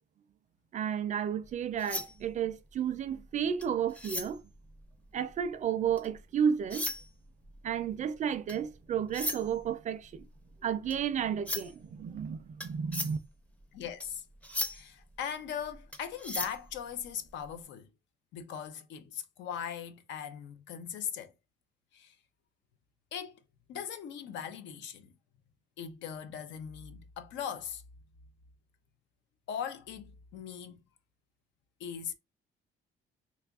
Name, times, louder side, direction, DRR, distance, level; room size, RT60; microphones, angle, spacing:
voice 1, 0.7-4.4 5.1-6.9 7.6-10.3 10.6-13.2, right 8 dB, 40° right, 0.4 m, -32 dB
sound 1, 1.4-6.2 6.6-17.6, left 1 dB, 5° left, 0.5 m, -40 dB
voice 2, 13.7-14.2 14.7-17.9 18.3-21.3 21.9-22.1 23.1-23.4 23.7-25.1 25.8-27.8 29.5-30.8 31.8-32.1, left 8 dB, 85° left, 0.6 m, -39 dB
3.0 x 2.4 x 3.6 m
cardioid pair, 125°, 18 cm